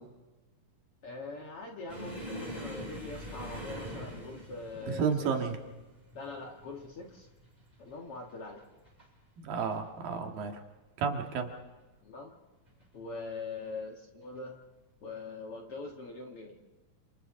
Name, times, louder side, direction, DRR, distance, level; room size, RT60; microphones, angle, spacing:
voice 1, 1.0-5.3 6.1-7.3 7.8-8.6 12.0-12.4 12.9-14.6 15.0-16.6, left 3 dB, 50° left, 1 dB, 2.0 m, -42 dB
sound 1, 1.9-9.1 9.4-9.8 10.1-10.3 11.1-11.7 12.7-12.9 14.2-14.4, equal, 10° right, 6.0 m, -44 dB
voice 2, 4.9-5.6 9.4-10.5 11.0-11.5, right 6 dB, 70° right, 3 dB, 3.5 m, -31 dB
29.5 x 27.5 x 3.8 m, 1.2 s
omnidirectional pair, 4.2 m